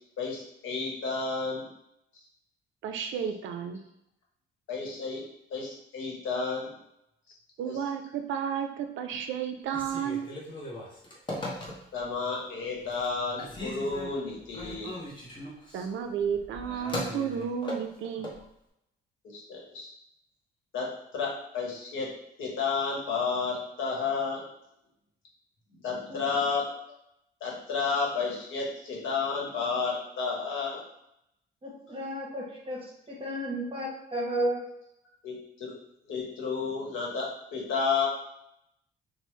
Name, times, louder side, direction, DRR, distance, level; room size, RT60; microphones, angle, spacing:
voice 1, 0.2-1.6 4.7-5.2 5.5-6.7 7.6-7.8 11.9-15.0 19.2-19.9 20.7-20.9 21.1-22.1 22.4-24.4 25.7-26.6 27.4-30.8 35.2-35.7 36.1-38.1, left 5 dB, 75° left, -2 dB, 0.9 m, -31 dB
voice 2, 2.8-3.8 7.6-10.3 15.7-18.4, right 7 dB, 75° right, 6 dB, 0.4 m, -32 dB
Telephone, 9.7-12.1 12.6-13.1 13.4-18.4, left 1 dB, 25° left, 0.8 m, -38 dB
voice 3, 26.1-26.4 31.6-34.6, right 1 dB, 25° right, -5 dB, 1.0 m, -33 dB
3.0 x 2.0 x 3.1 m, 0.79 s
cardioid pair, 90°, 20 cm